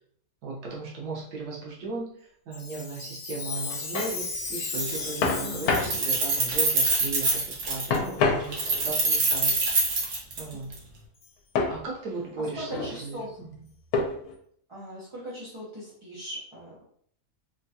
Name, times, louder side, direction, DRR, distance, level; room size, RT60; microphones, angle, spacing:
voice 1, 0.4-10.0 10.4-10.8 11.7-13.5, right 3 dB, 90° right, -3 dB, 1.4 m, -36 dB
Chime, 2.5-6.6 7.3-7.4 8.0-8.2 8.8-9.0 9.6-9.7 10.4-10.5 11.2-11.3, left 4 dB, 60° left, 0.7 m, -36 dB
sound 1, 3.5-4.2 5.2-6.0 7.9-8.9 11.5-11.8 12.5-13.0 13.9-14.3, left 4 dB, 80° left, 1.1 m, -27 dB
Keys jangling, 4.1-4.2 4.5-5.3 5.5-8.0 8.5-10.8, right 3 dB, 60° right, 1.1 m, -25 dB
voice 2, 5.4-6.1 12.6-13.4 14.7-16.8, equal, 30° right, -8 dB, 0.5 m, -39 dB
3.6 x 2.2 x 2.7 m, 0.62 s
omnidirectional pair, 1.6 m